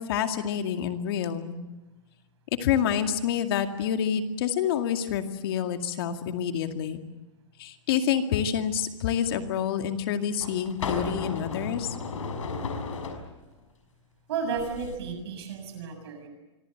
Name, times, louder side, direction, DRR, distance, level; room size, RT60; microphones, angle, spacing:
voice 1, 0.0-1.5 2.6-7.0 7.6-12.0, left 8 dB, 50° left, 7 dB, 2.2 m, -28 dB
sound 1, 9.3-9.4 10.4-13.2 14.5-15.0, left 4 dB, 90° left, 6.1 m, -34 dB
voice 2, 14.3-16.3, right 5 dB, 55° right, 6 dB, 6.9 m, -33 dB
25.5 x 24.0 x 7.9 m, 1.1 s
hypercardioid pair, 160°, 16 cm